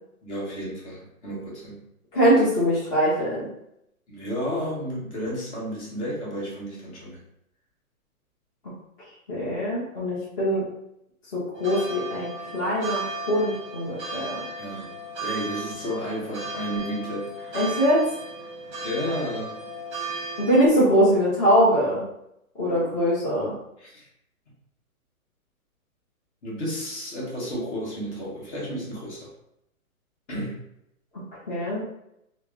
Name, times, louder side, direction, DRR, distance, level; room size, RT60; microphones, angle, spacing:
voice 1, 0.2-1.8 4.1-7.2 14.6-14.9 15.2-17.6 18.8-19.5 23.8-24.1 26.4-29.3 30.3-30.6, equal, 50° left, -4 dB, 1.2 m, -32 dB
voice 2, 2.1-3.5 9.3-10.6 11.3-14.4 17.5-18.1 20.4-22.0 22.6-23.5 31.5-31.8, equal, 30° left, -9 dB, 0.8 m, -22 dB
sound 1, 11.6-20.7, right 2 dB, 20° right, 0.6 m, -35 dB
3.0 x 2.0 x 2.3 m, 0.80 s
hypercardioid pair, 155°, 44 cm